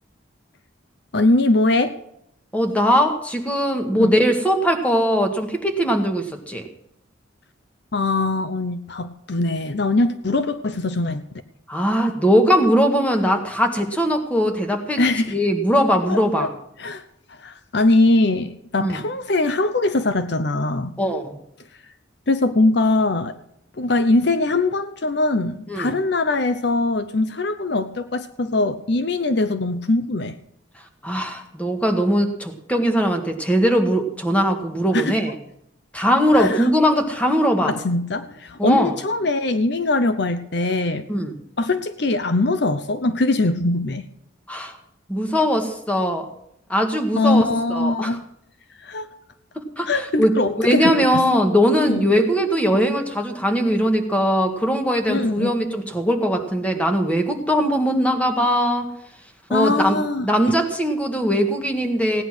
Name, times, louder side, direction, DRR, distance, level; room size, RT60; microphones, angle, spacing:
voice 1, 1.1-2.0 3.9-4.1 7.9-11.2 15.0-15.3 16.1-16.5 16.8-17.0 17.3-20.9 22.3-23.4 23.8-30.4 34.9-35.2 36.3-36.7 37.6-41.0 41.6-44.1 47.2-48.2 48.8-49.1 49.9-51.2 51.9-52.0 55.1-55.5 59.5-60.3, left 2 dB, 55° left, 11 dB, 0.8 m, -21 dB
voice 2, 2.5-6.7 11.7-16.5 18.8-19.0 21.0-21.4 25.7-25.9 31.0-35.4 35.9-37.7 38.6-39.0 41.1-41.4 44.5-44.7 45.1-46.3 46.7-48.2 49.6-58.9 59.5-60.0 60.2-62.2, equal, 5° left, 4 dB, 1.8 m, -20 dB
17.0 x 10.0 x 6.2 m, 0.76 s
head